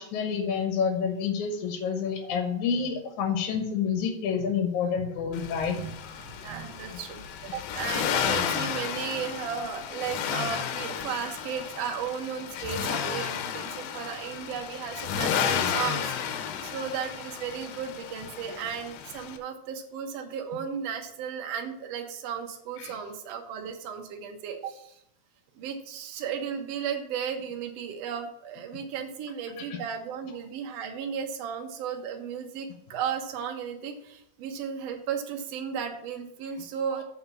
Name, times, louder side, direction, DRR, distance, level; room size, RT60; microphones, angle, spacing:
voice 1, 0.0-5.8 22.8-23.0 29.7-29.8, left 6 dB, 70° left, 4 dB, 2.2 m, -28 dB
Accelerating revving vroom, 5.3-19.4, left 8 dB, 85° left, 2.5 m, -32 dB
voice 2, 5.6-5.9 6.2-25.0 25.6-37.0, right 7 dB, 65° right, 3 dB, 1.7 m, -35 dB
8.3 x 4.4 x 7.0 m, 0.74 s
omnidirectional pair, 4.1 m